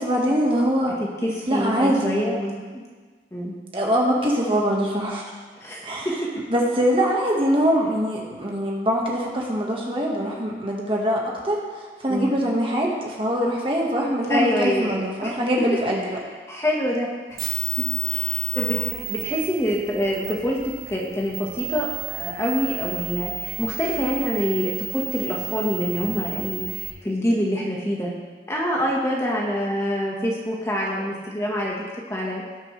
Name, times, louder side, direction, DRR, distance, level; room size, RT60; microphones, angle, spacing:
voice 1, 0.0-1.0 1.5-2.3 3.7-5.2 5.8-6.1 6.5-11.6 12.0-16.2, equal, 30° right, -2 dB, 1.5 m, -23 dB
voice 2, 1.0-2.8 3.3-3.5 5.6-6.3 12.1-12.3 14.3-15.3 16.5-17.1 17.8-20.6 20.9-28.1 28.5-31.8 32.1-32.4, equal, 15° left, -3 dB, 1.4 m, -26 dB
sound 1, 17.3-26.9, right 9 dB, 55° right, 1.6 m, -31 dB
18.5 x 6.7 x 3.3 m, 1.4 s
head